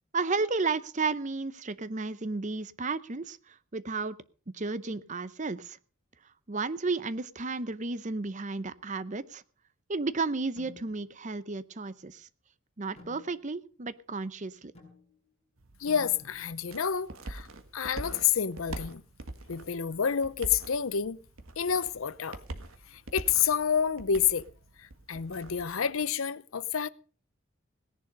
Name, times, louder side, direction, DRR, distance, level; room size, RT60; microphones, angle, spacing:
voice 1, 0.1-4.2 4.5-5.8 6.5-9.4 9.9-12.3 12.8-14.7, right 3 dB, 35° right, 0.7 m, -33 dB
sound 1, 10.6-11.2 13.0-13.7 14.7-15.3 15.9-16.7 18.0-18.4 19.9-20.5, left 4 dB, 30° left, 6.3 m, -54 dB
sound 2, 15.6-26.1, right 2 dB, 80° right, 1.7 m, -44 dB
voice 2, 15.8-17.5 17.7-19.0 19.5-21.2 21.6-22.4 22.9-24.5 24.8-26.9, left 7 dB, 75° left, 0.7 m, -29 dB
18.0 x 10.5 x 5.2 m
head